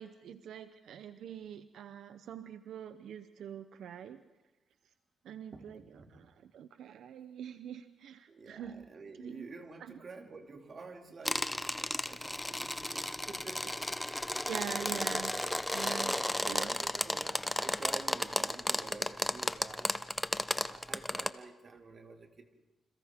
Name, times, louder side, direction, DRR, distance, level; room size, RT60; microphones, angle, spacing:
voice 1, 0.0-4.2 5.2-8.8 9.2-9.5 9.8-10.0 14.5-15.3 15.7-16.1 16.4-16.7, right 9 dB, 85° right, 11 dB, 0.7 m, -44 dB
voice 2, 5.5-6.4 8.3-14.3 14.9-15.3 15.7-19.9 20.7-22.5, right 4 dB, 45° right, 4 dB, 2.5 m, -50 dB
sound 1, 11.3-21.3, left 1 dB, 10° left, 0.7 m, -34 dB
28.5 x 26.5 x 3.6 m, 1.1 s
cardioid pair, 110°, 0 cm